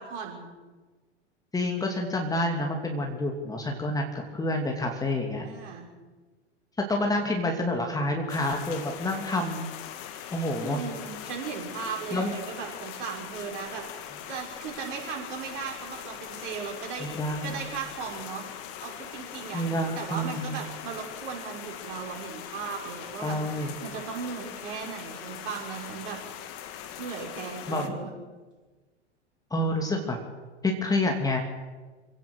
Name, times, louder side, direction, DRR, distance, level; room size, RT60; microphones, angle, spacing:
voice 1, 0.1-0.5 5.4-5.9 10.1-10.2 10.6-17.1 17.4-18.5 18.8-19.6 20.0-26.2 27.0-28.1, right 6 dB, 50° right, 0 dB, 6.2 m, -37 dB
voice 2, 1.5-5.4 6.9-9.7 10.3-10.8 12.1-12.3 17.0-17.6 19.5-20.6 23.2-23.7 27.7-27.9 29.5-30.2 30.6-31.4, left 1 dB, 10° left, 2 dB, 2.8 m, -28 dB
sound 1, 8.3-27.9, left 10 dB, 40° left, 2.2 m, -41 dB
26.5 x 17.5 x 6.6 m, 1.3 s
figure-of-eight pair, 90°, 35 cm